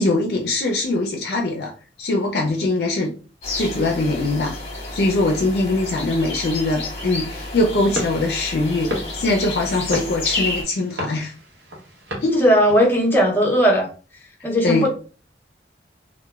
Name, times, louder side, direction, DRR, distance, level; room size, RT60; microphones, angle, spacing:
voice 1, 0.0-1.7 2.0-3.1 3.5-4.5 4.9-11.3 12.2-12.4 14.6-14.9, left 2 dB, 65° left, 0.4 m, -22 dB
sound 1, 3.4-10.6, left 2 dB, 35° left, 0.8 m, -30 dB
sound 2, 7.9-13.1, left 1 dB, 80° right, 0.9 m, -33 dB
voice 2, 12.4-13.9 14.4-14.9, equal, 10° left, 0.5 m, -17 dB
2.9 x 2.1 x 2.2 m
head